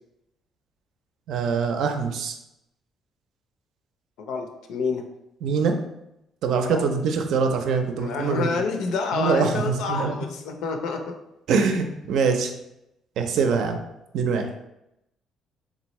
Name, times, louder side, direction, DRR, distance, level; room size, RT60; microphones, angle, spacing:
voice 1, 1.3-2.4 5.4-5.7 6.4-8.6 9.1-10.1 11.5-12.5 13.2-13.8 14.1-14.5, right 5 dB, 65° right, 5 dB, 0.5 m, -23 dB
voice 2, 4.2-5.0 6.6-6.8 8.0-11.0, left 4 dB, 80° left, 4 dB, 0.6 m, -28 dB
4.0 x 3.5 x 3.1 m, 0.86 s
cardioid pair, 165°, 0 cm